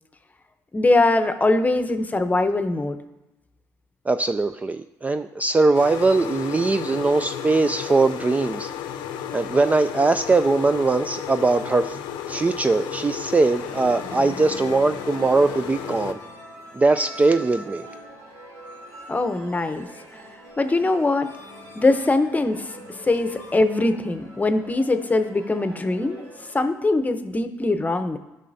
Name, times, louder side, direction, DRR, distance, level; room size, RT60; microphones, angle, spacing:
voice 1, 0.7-3.0 19.1-19.9 20.6-21.3 21.8-22.7 23.0-26.2 26.5-28.2, left 2 dB, 20° left, 8 dB, 0.8 m, -22 dB
voice 2, 4.1-8.7 9.3-12.0 12.3-16.2 16.7-17.9, right 3 dB, 20° right, 9 dB, 0.3 m, -21 dB
sound 1, 5.7-16.1, left 9 dB, 85° left, 0.7 m, -33 dB
sound 2, 13.5-26.6, equal, 80° right, 3.0 m, -43 dB
13.0 x 5.6 x 2.7 m, 0.97 s
supercardioid pair, 70°, 8 cm